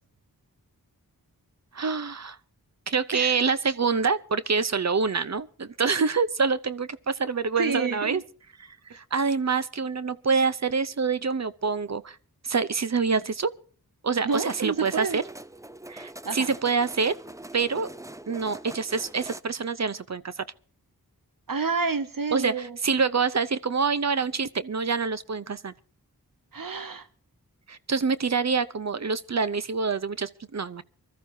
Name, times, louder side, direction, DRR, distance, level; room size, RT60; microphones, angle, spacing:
voice 1, 1.7-2.4 2.9-8.2 8.6-12.2 12.4-13.5 14.0-15.2 15.9-17.1 17.5-17.9 18.3-20.4 22.3-25.7 27.7-30.8, right 5 dB, 50° right, 0.7 m, -26 dB
voice 2, 7.6-8.2 14.2-15.2 16.2-16.5 21.5-22.8 26.5-27.1, right 4 dB, 65° right, 1.1 m, -29 dB
sound 1, 14.3-19.4, right 1 dB, 10° right, 0.6 m, -43 dB
24.5 x 13.5 x 2.7 m
wide cardioid pair, 60°, 36 cm